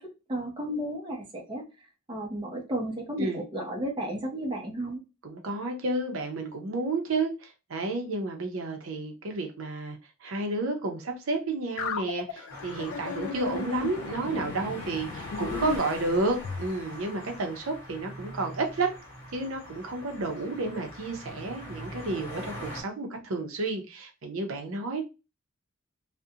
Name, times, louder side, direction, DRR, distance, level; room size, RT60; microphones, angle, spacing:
voice 1, 0.3-1.6 2.1-5.0, right 1 dB, 25° right, -1 dB, 0.6 m, -33 dB
voice 2, 5.2-19.0 19.3-25.0, right 2 dB, 70° right, 3 dB, 0.6 m, -31 dB
sound 1, 11.8-16.7, left 5 dB, 80° left, 0.3 m, -36 dB
sound 2, 12.5-22.8, equal, 20° left, 1.1 m, -42 dB
2.4 x 2.1 x 2.7 m, 0.28 s
head